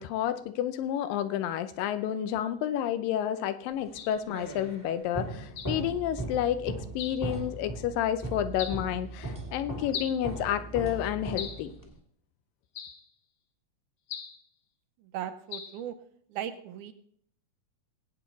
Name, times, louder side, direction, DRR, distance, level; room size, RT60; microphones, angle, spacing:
voice 1, 0.0-11.7, left 10 dB, 85° left, 11 dB, 2.5 m, -30 dB
sound 1, 3.9-12.0, right 2 dB, 10° left, 1.1 m, -38 dB
sound 2, 4.0-4.2 5.6-5.8 7.0-7.3 8.6-8.8 9.9-10.2 11.4-11.7 12.8-13.1 14.1-14.4 15.5-15.8, left 7 dB, 65° left, 2.0 m, -39 dB
voice 2, 15.0-16.0 16.3-16.9, right 10 dB, 75° right, 8 dB, 2.2 m, -37 dB
19.5 x 8.6 x 4.0 m, 0.64 s
omnidirectional pair, 3.9 m